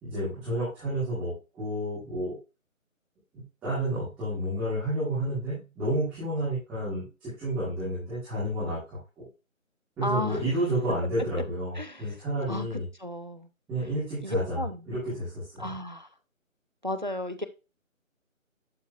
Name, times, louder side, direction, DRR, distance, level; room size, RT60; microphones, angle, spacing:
voice 1, 0.0-2.4 3.6-9.3 10.0-12.9 13.7-15.7, right 1 dB, 5° right, 2.2 m, -30 dB
voice 2, 10.0-10.4 11.8-12.0 12.5-12.7 13.0-13.5 14.2-14.8 15.6-16.1 16.8-17.5, left 1 dB, 35° right, 0.5 m, -33 dB
11.5 x 4.3 x 2.5 m
figure-of-eight pair, 155°, 41 cm